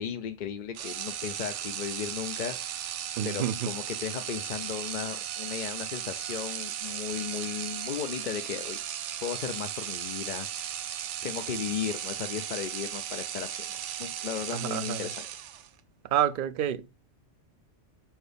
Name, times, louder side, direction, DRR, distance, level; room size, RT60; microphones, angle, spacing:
voice 1, 0.0-2.6 3.2-8.8 9.2-10.7 11.2-15.2, left 9 dB, 55° left, 0.5 m, -35 dB
sound 1, 0.7-15.8, right 10 dB, 80° right, 0.9 m, -36 dB
voice 2, 3.2-3.7 14.5-15.1 16.1-16.9, right 10 dB, 60° right, 0.6 m, -28 dB
4.6 x 4.5 x 5.0 m
omnidirectional pair, 1.2 m